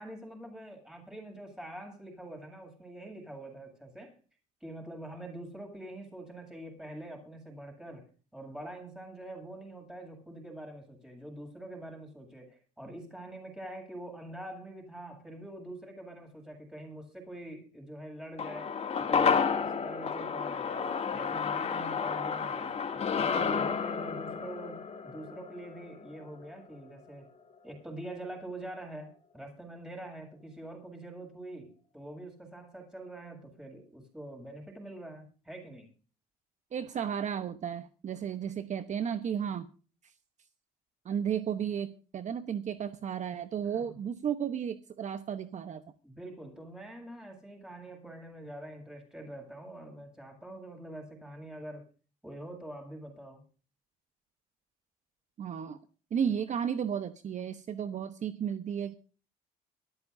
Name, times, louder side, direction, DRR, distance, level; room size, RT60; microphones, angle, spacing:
voice 1, 0.0-4.2 4.6-27.3 27.6-35.9 43.7-44.0 46.0-51.9 52.2-53.4, right 1 dB, 5° right, 2 dB, 7.9 m, -45 dB
sound 1, 18.4-26.9 27.2-27.3, left 6 dB, 40° left, 2.6 m, -31 dB
voice 2, 36.7-39.7 40.0-40.1 41.0-45.8 55.4-55.8 56.1-58.9, right 8 dB, 45° right, 10 dB, 1.1 m, -33 dB
23.0 x 14.0 x 2.7 m, 0.38 s
cardioid pair, 110°, 17 cm